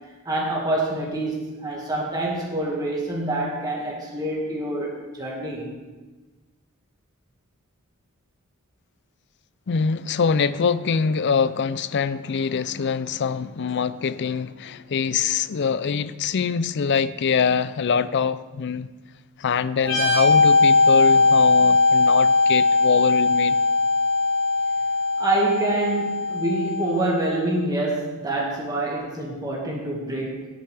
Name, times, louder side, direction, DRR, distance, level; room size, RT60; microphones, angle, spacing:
voice 1, 0.3-5.7 25.2-30.5, right 2 dB, 20° right, -3 dB, 1.9 m, -26 dB
voice 2, 9.7-18.9 19.4-23.6, left 6 dB, 55° left, 15 dB, 0.4 m, -24 dB
sound 1, 19.8-27.3, left 3 dB, 80° left, 2.2 m, -19 dB
18.0 x 8.8 x 3.4 m, 1.3 s
head